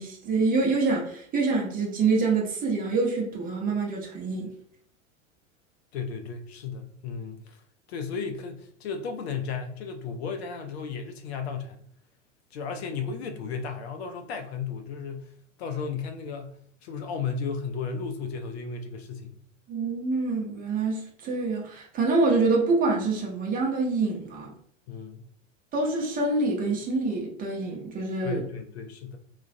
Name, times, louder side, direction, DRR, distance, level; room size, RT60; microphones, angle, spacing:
voice 1, 0.0-4.5 19.7-24.5 25.7-28.4, right 3 dB, 20° right, 0.7 m, -26 dB
voice 2, 5.9-7.6 7.9-11.8 12.5-15.3 15.6-19.4 24.9-25.2 28.2-29.2, left 5 dB, 55° left, 0.5 m, -34 dB
2.3 x 2.1 x 2.6 m
figure-of-eight pair, 85°, 39 cm